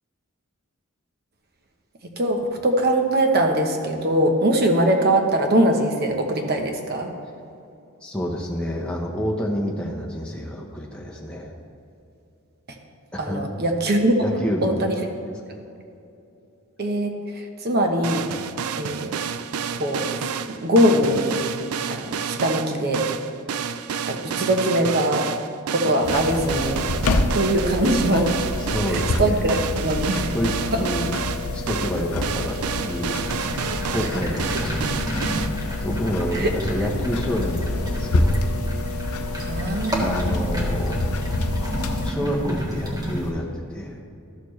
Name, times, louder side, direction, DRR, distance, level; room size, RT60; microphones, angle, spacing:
voice 1, 2.0-7.1 12.7-12.8 13.2-14.2 14.6-15.0 16.8-18.3 18.7-19.2 19.8-21.4 21.9-23.1 24.1-25.3 25.7-26.8 27.3-28.3 28.9-30.4 30.7-30.9 36.3-36.5 39.4-40.7, right 1 dB, 50° right, 3 dB, 0.9 m, -22 dB
voice 2, 8.0-11.6 13.1-13.4 14.2-14.7 28.7-29.6 30.3-30.5 30.8-31.1 31.5-33.3 33.9-34.8 35.4-38.4 40.0-41.0 41.9-44.0, equal, 5° left, -3 dB, 0.8 m, -28 dB
sound 1, 18.0-35.5, right 7 dB, 85° right, 0.4 m, -30 dB
sound 2, 26.0-42.1, left 2 dB, 80° left, 0.6 m, -27 dB
sound 3, 33.2-43.3, equal, 20° right, 1.3 m, -31 dB
12.5 x 6.7 x 3.2 m, 2.7 s
head